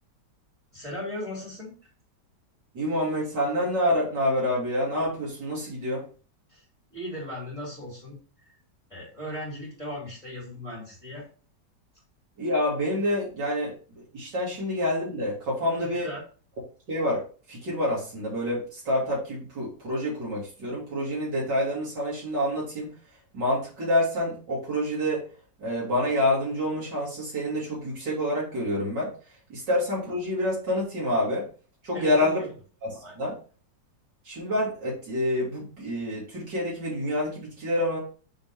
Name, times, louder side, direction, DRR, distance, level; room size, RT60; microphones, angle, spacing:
voice 1, 0.7-1.7 6.5-6.6 6.9-8.6 8.9-11.2 15.7-16.2 31.9-32.1 32.4-32.5 33.0-33.2, equal, 20° left, -6 dB, 3.0 m, -37 dB
voice 2, 2.7-6.1 12.4-13.7 14.1-16.1 16.9-17.2 17.5-22.9 23.3-25.3 25.6-29.1 29.5-31.5 31.8-32.5 32.8-33.3 34.2-38.0, left 1 dB, 80° right, -7 dB, 3.3 m, -27 dB
7.0 x 4.0 x 3.6 m, 0.39 s
omnidirectional pair, 1.9 m